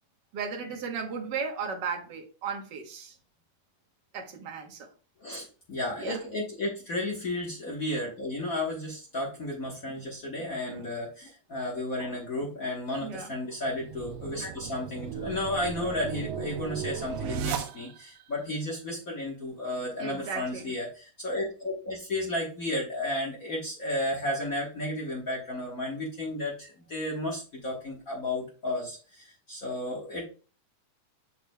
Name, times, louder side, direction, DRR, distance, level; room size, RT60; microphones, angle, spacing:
voice 1, 0.3-3.1 4.1-4.9 6.0-6.2 9.9-10.0 10.7-10.9 13.0-13.3 20.0-20.7, right 5 dB, 70° right, 1.0 m, -36 dB
voice 2, 5.2-30.3, left 1 dB, 70° left, 0.8 m, -33 dB
sound 1, 13.6-18.2, right 8 dB, 85° right, 1.5 m, -36 dB
6.7 x 6.5 x 2.2 m
omnidirectional pair, 3.6 m